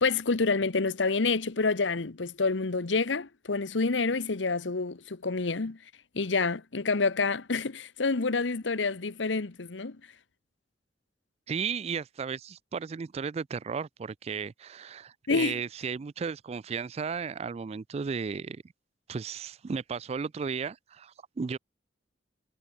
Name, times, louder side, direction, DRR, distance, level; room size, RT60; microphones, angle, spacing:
voice 1, 0.0-5.8 6.1-10.0 15.3-15.6, left 4 dB, 90° left, 1.0 m, -28 dB
voice 2, 11.5-18.6 19.1-21.6, right 5 dB, 35° right, 0.3 m, -34 dB
head